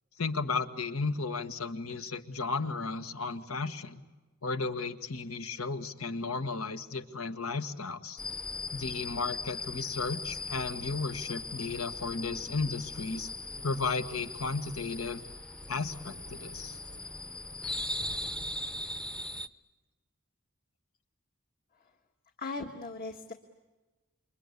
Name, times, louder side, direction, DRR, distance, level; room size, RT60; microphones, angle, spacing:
voice 1, 0.2-4.0 4.4-8.2 8.7-13.3 13.6-15.2 15.7-16.8, left 4 dB, 75° left, 9 dB, 1.6 m, -34 dB
sound 1, 8.2-19.5, left 2 dB, 5° left, 0.8 m, -39 dB
voice 2, 22.4-23.3, left 3 dB, 45° left, 4 dB, 1.6 m, -39 dB
28.5 x 24.5 x 8.4 m, 1.2 s
head